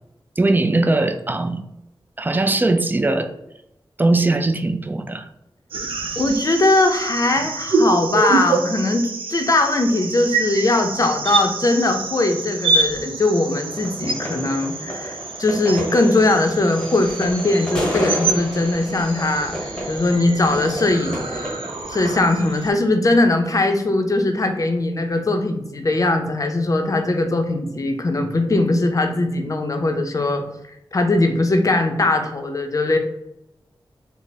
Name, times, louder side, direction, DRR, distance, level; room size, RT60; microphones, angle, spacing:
voice 1, 0.4-1.6 2.2-3.3 4.0-5.3, right 2 dB, 20° right, 8 dB, 0.3 m, -20 dB
sound 1, 5.7-22.7, right 3 dB, 80° right, 0.5 m, -26 dB
voice 2, 6.2-15.1 15.4-21.5 21.9-30.4 30.9-33.0, left 2 dB, 40° left, 5 dB, 0.5 m, -20 dB
sound 2, 13.6-22.2, equal, 10° left, 1.2 m, -31 dB
3.3 x 2.0 x 3.9 m, 0.83 s
wide cardioid pair, 80°, 9 cm